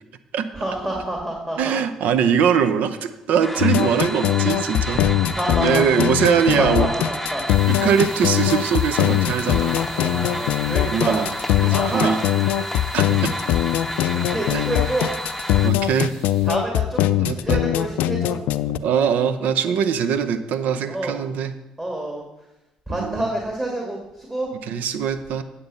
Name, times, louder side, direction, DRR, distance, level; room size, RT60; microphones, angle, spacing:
voice 1, 0.5-1.7 4.9-5.8 6.5-7.4 9.9-11.2 11.7-12.2 13.2-13.5 14.1-15.1 16.4-18.4 19.7-19.8 20.9-21.2 21.8-22.5 22.9-24.5, right 1 dB, 15° right, 0 dB, 2.1 m, -28 dB
voice 2, 1.6-5.0 5.6-6.9 7.7-9.8 10.9-11.3 11.6-12.2 12.9-13.3 14.5-14.6 15.6-16.1 17.2-17.6 18.8-21.5 22.9-23.2 24.7-25.4, right 7 dB, 65° right, 10 dB, 0.7 m, -22 dB
sound 1, 3.4-15.7, left 1 dB, 5° left, 0.8 m, -31 dB
sound 2, 3.6-18.8, left 13 dB, 70° left, 0.4 m, -21 dB
sound 3, 7.5-16.5, equal, 85° right, 3.3 m, -44 dB
8.9 x 6.8 x 5.6 m, 0.96 s
hypercardioid pair, 55°, 3 cm